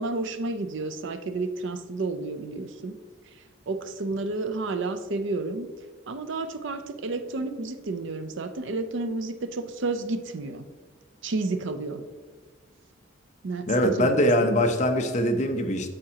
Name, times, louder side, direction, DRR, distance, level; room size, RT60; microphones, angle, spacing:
voice 1, 0.0-3.0 3.7-5.7 6.1-10.6 11.2-12.1 13.4-14.3, right 3 dB, 65° right, 9 dB, 0.6 m, -31 dB
voice 2, 13.7-15.9, left 1 dB, 35° left, 6 dB, 0.7 m, -22 dB
8.6 x 7.6 x 2.9 m, 1.4 s
head